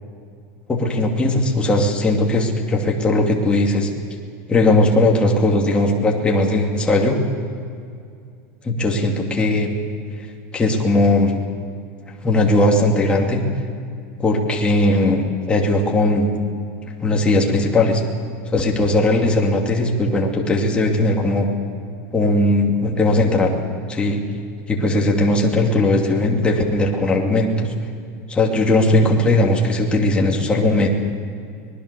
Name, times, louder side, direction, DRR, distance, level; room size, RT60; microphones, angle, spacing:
voice 1, 0.7-3.9 4.5-7.2 8.6-9.7 10.5-11.3 12.2-13.4 14.2-15.2 15.5-16.3 17.0-18.0 18.5-21.5 22.1-23.5 23.9-24.2 24.7-27.7 28.3-30.9, left 2 dB, 15° left, 0 dB, 2.5 m, -18 dB
25.0 x 20.0 x 6.8 m, 2.3 s
supercardioid pair, 160°, 8 cm